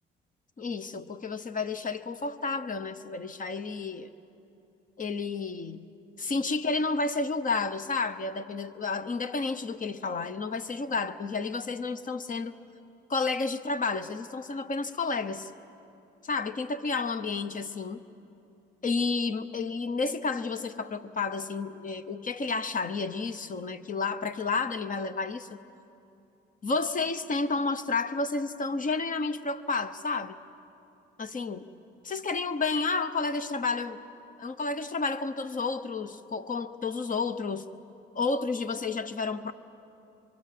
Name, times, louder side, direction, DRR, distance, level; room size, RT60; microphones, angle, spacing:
voice 1, 0.6-4.1 5.0-5.9 6.2-12.5 13.1-15.5 16.2-18.0 18.8-25.6 26.6-30.4 31.2-31.6 32.0-34.0 34.4-37.7 38.1-39.5, left 4 dB, 40° left, 12 dB, 1.0 m, -31 dB
26.5 x 23.5 x 7.6 m, 2.8 s
cardioid pair, 90°, 20 cm